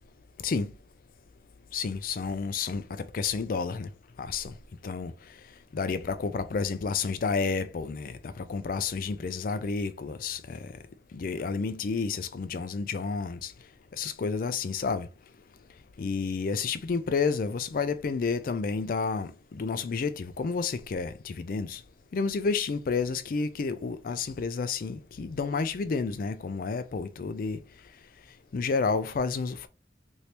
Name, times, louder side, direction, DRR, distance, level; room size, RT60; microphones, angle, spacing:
voice 1, 1.7-3.9 4.2-4.5 4.8-5.1 5.7-10.7 11.1-13.5 14.0-15.1 16.0-21.8 22.1-27.6 28.5-29.7, left 4 dB, 50° left, 0.4 m, -30 dB
2.9 x 2.6 x 3.3 m
head